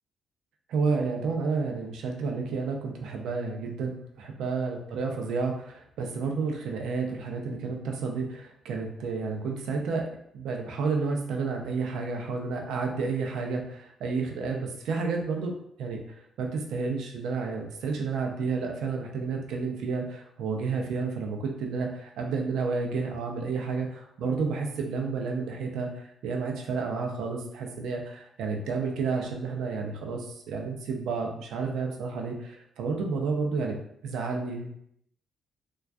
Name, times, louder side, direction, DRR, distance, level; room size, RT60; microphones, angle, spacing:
voice 1, 0.7-10.1 10.3-15.5 15.8-33.8 34.0-34.8, right 4 dB, 80° right, 2 dB, 0.4 m, -31 dB
2.2 x 2.2 x 2.5 m, 0.73 s
cardioid pair, 90°, 0 cm